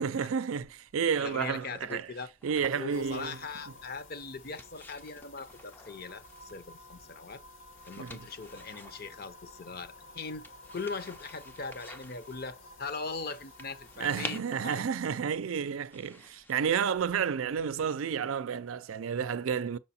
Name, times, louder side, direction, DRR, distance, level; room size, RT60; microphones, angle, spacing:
voice 1, 0.0-2.1 2.4-3.4 8.0-8.2 14.0-19.8, right 7 dB, 90° right, 0.4 m, -31 dB
sound 1, 0.6-17.9, left 2 dB, 10° left, 0.4 m, -51 dB
voice 2, 1.2-2.3 2.7-7.4 7.9-10.4 10.7-14.8, left 4 dB, 50° left, 0.7 m, -40 dB
sound 2, 2.9-14.4, left 2 dB, 75° left, 1.4 m, -52 dB
6.3 x 4.9 x 4.2 m
head